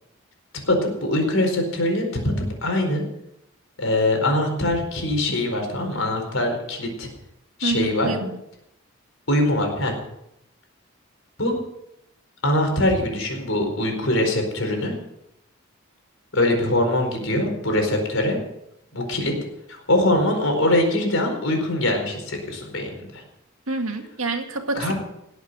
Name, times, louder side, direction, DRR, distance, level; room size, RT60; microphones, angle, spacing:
voice 1, 1.0-2.3 2.6-3.0 3.8-7.1 7.6-8.1 9.3-9.9 11.4-11.5 12.4-14.9 16.3-18.4 18.9-19.3 19.7-23.2 24.7-24.9, left 1 dB, 75° left, 3 dB, 4.6 m, -22 dB
voice 2, 7.6-8.4 23.7-24.9, right 3 dB, 85° right, 4 dB, 2.0 m, -27 dB
19.0 x 8.1 x 6.8 m, 0.83 s
head